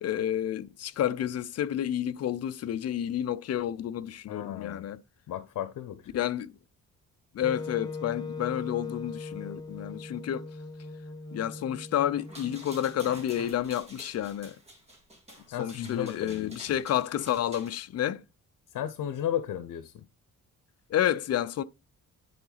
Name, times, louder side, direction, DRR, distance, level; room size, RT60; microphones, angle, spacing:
voice 1, 0.0-5.0 6.1-6.5 7.3-10.5 11.3-14.6 15.6-18.2 20.9-21.6, left 11 dB, 50° left, 0.5 m, -30 dB
voice 2, 4.3-4.9 5.3-6.1 15.5-16.5 18.7-20.1, left 10 dB, 90° left, 0.7 m, -34 dB
Wind instrument woodwind instrument, 7.4-13.4, left 3 dB, 10° left, 0.8 m, -40 dB
sound 1, 12.2-17.8, right 1 dB, 20° right, 2.0 m, -49 dB
10.0 x 3.9 x 3.9 m
wide cardioid pair, 170°, 32 cm